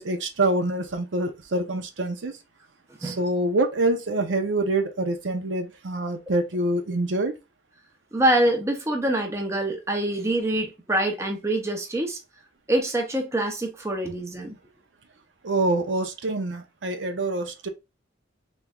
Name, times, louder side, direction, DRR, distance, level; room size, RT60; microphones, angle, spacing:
voice 1, 0.0-2.4 3.0-7.3 15.4-17.7, right 2 dB, 75° right, 0.6 m, -26 dB
voice 2, 8.1-12.2 12.7-14.6, right 1 dB, 15° right, 0.6 m, -25 dB
3.4 x 3.1 x 2.3 m
head